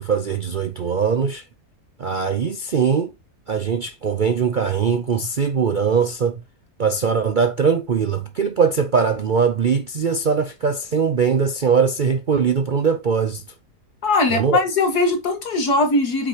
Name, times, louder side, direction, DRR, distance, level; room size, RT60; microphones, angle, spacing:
voice 1, 0.0-1.4 2.0-3.1 3.5-6.4 6.8-13.4 14.3-14.6, right 6 dB, 65° right, 0.4 m, -21 dB
voice 2, 14.0-16.3, left 2 dB, 70° left, 2.2 m, -20 dB
8.0 x 6.0 x 2.9 m
omnidirectional pair, 1.7 m